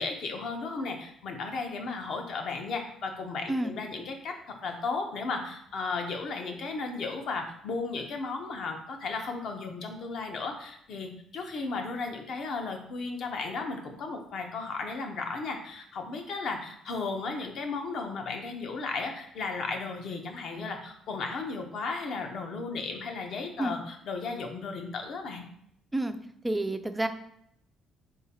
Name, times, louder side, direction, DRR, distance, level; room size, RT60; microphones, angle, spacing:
voice 1, 0.0-25.5, left 4 dB, 60° left, 3 dB, 0.7 m, -35 dB
voice 2, 26.4-27.1, right 1 dB, 10° right, 8 dB, 0.3 m, -29 dB
3.8 x 3.8 x 2.8 m, 0.71 s
cardioid pair, 130°, 0 cm